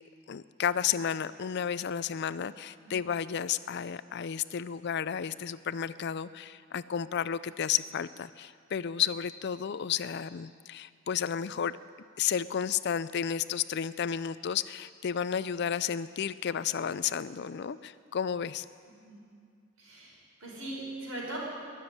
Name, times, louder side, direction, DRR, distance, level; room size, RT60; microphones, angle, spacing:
voice 1, 0.3-11.8 12.2-18.7, left 8 dB, 50° left, 16 dB, 0.4 m, -32 dB
voice 2, 19.8-21.4, right 1 dB, 75° right, -2 dB, 4.9 m, -40 dB
20.5 x 7.2 x 9.7 m, 2.2 s
head